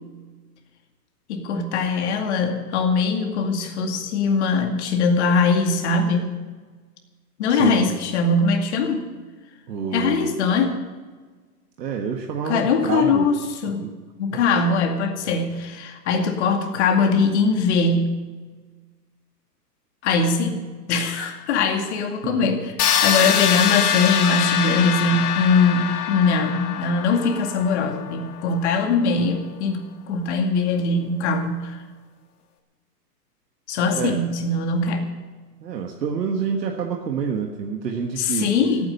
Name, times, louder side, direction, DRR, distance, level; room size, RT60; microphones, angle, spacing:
voice 1, 1.3-6.4 7.4-9.1 9.9-10.8 12.4-13.9 14.2-18.2 20.0-31.8 33.7-35.1 38.2-38.9, left 4 dB, 45° left, 4 dB, 2.3 m, -21 dB
voice 2, 7.5-7.8 9.7-10.4 11.8-13.3 13.8-13.9 15.2-15.4 22.2-22.5 33.9-34.2 35.6-38.5, right 6 dB, 90° right, 2 dB, 1.7 m, -27 dB
sound 1, 22.8-28.6, left 9 dB, 65° left, 1.6 m, -24 dB
16.0 x 9.4 x 7.9 m, 1.4 s
hypercardioid pair, 160°, 48 cm